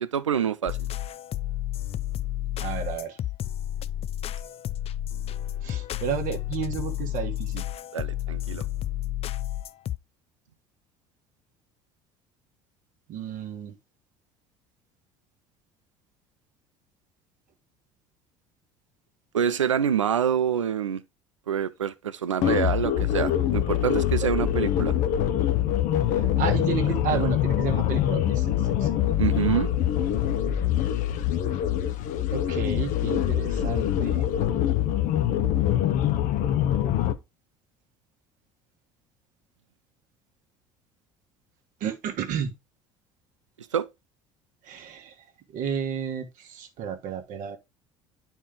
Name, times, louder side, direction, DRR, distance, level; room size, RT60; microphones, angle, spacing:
voice 1, 0.0-0.8 7.9-8.7 19.3-21.0 21.5-24.9 26.9-27.2 29.2-29.7 43.7-43.9, right 8 dB, 90° right, 0.5 m, -26 dB
sound 1, 0.7-10.0, left 13 dB, 40° left, 0.5 m, -31 dB
voice 2, 2.6-3.2 5.6-7.6 13.1-13.7 24.6-24.7 26.1-29.6 32.3-34.3 41.8-42.5 44.6-45.1 45.5-47.6, right 8 dB, 55° right, 1.5 m, -32 dB
sound 2, 22.4-37.1, left 11 dB, 55° left, 0.9 m, -24 dB
9.9 x 4.3 x 3.6 m
hypercardioid pair, 65°, 16 cm